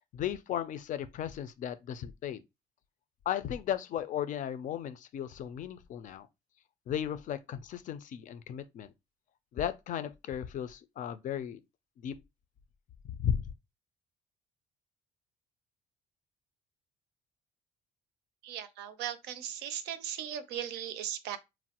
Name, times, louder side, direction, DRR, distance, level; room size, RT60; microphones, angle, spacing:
voice 1, 0.0-2.4 3.3-6.3 6.9-8.9 9.5-11.6 12.0-12.1 13.1-13.4, left 10 dB, 50° left, 0.4 m, -35 dB
voice 2, 18.4-21.4, right 10 dB, 85° right, 0.5 m, -38 dB
3.0 x 2.0 x 2.8 m
cardioid pair, 110°, 17 cm